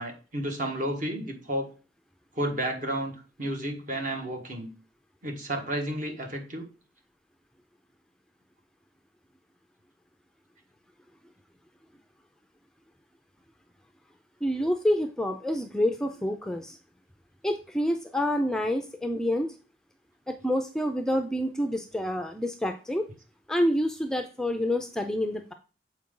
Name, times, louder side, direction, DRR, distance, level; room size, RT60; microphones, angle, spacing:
voice 1, 0.0-1.7 2.3-4.7 5.2-6.6, right 1 dB, 50° right, 3 dB, 1.6 m, -32 dB
voice 2, 14.4-16.8 17.4-19.5 20.3-23.1 23.5-25.5, left 1 dB, 5° left, 5 dB, 0.4 m, -28 dB
7.3 x 4.6 x 3.7 m, 0.34 s
head